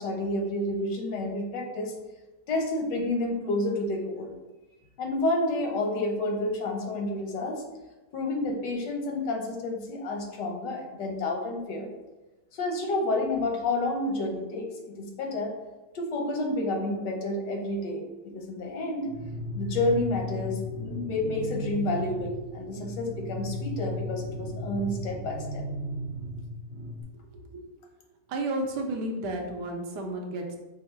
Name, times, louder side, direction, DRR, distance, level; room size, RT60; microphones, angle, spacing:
voice 1, 0.0-1.9 2.5-4.3 5.0-7.6 8.1-11.9 12.5-15.5 15.9-19.1 19.5-25.6, left 2 dB, 90° left, 1 dB, 1.5 m, -30 dB
sound 1, 19.1-27.0, equal, 60° right, 0.6 m, -35 dB
voice 2, 27.3-27.6 28.3-30.6, right 1 dB, 85° right, 3 dB, 1.3 m, -32 dB
5.4 x 2.0 x 4.4 m, 1.1 s
omnidirectional pair, 1.8 m